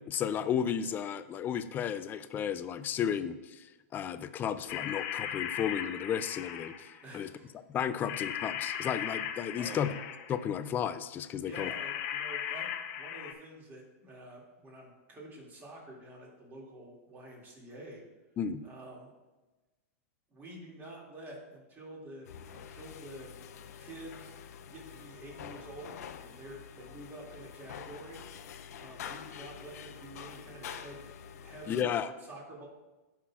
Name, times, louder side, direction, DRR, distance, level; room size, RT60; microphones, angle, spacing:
voice 1, 0.1-6.7 7.1-7.3 7.7-9.9 10.3-11.7 18.4-18.6 31.7-32.1, left 8 dB, 20° left, 13 dB, 0.4 m, -33 dB
sound 1, 4.7-7.0 8.1-10.5 11.5-13.3, left 10 dB, 45° left, 0.8 m, -37 dB
voice 2, 7.0-7.5 7.9-8.1 9.6-10.0 11.4-18.0 18.6-19.1 20.3-23.3 23.8-24.4 24.6-28.2 28.8-31.1 31.4-32.0 32.3-32.7, right 1 dB, 20° right, -2 dB, 2.4 m, -48 dB
sound 2, 22.2-31.8, left 8 dB, 75° left, 0.5 m, -47 dB
15.0 x 5.8 x 2.4 m, 1.1 s
hypercardioid pair, 140°, 9 cm